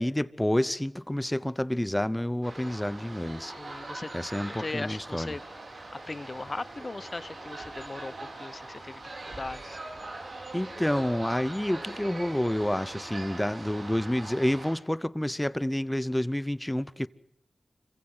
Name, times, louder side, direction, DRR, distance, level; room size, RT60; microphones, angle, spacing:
voice 1, 0.0-3.5 4.1-5.3 10.5-17.1, left 1 dB, 10° left, 0.7 m, -29 dB
sound 1, 2.4-14.7, right 2 dB, 75° right, 4.6 m, -42 dB
voice 2, 3.6-4.1 4.5-5.4 6.1-8.1 8.4-9.8, left 3 dB, 45° left, 0.7 m, -38 dB
26.5 x 16.0 x 7.7 m
cardioid pair, 40°, 0 cm